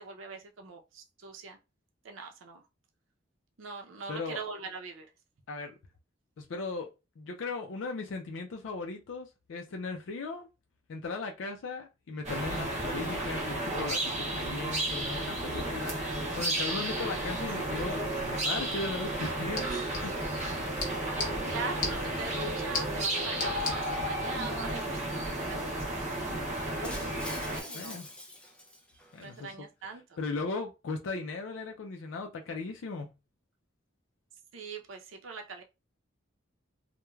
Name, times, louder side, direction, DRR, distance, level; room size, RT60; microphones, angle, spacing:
voice 1, 0.0-1.6 2.0-2.6 3.6-5.1 19.5-20.1 21.5-28.0 29.2-30.2 34.5-35.6, right 4 dB, 90° right, 0.6 m, -42 dB
voice 2, 4.1-4.4 5.5-5.8 6.4-6.9 7.2-10.5 10.9-16.0 16.3-20.6 27.7-28.1 29.1-29.5 30.2-33.1, left 3 dB, 80° left, 0.4 m, -37 dB
sound 1, 12.2-27.6, right 1 dB, 35° right, 0.6 m, -33 dB
sound 2, 19.1-24.1, left 3 dB, 45° left, 0.8 m, -39 dB
Shatter, 26.8-29.2, left 1 dB, 5° left, 0.3 m, -44 dB
3.0 x 2.1 x 2.3 m
head